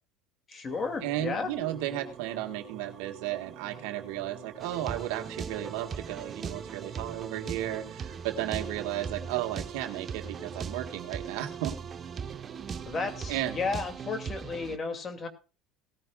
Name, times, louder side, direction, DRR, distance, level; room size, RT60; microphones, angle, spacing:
voice 1, 0.5-1.5 12.9-15.3, left 4 dB, 35° left, 6 dB, 2.5 m, -33 dB
sound 1, 0.6-14.0, right 8 dB, 55° right, 2.3 m, -48 dB
voice 2, 1.0-11.7 13.3-13.5, right 13 dB, 80° right, 5 dB, 1.6 m, -34 dB
sound 2, 4.6-14.8, right 6 dB, 35° right, 1.0 m, -39 dB
18.0 x 13.5 x 2.4 m, 0.33 s
supercardioid pair, 90°, 0 cm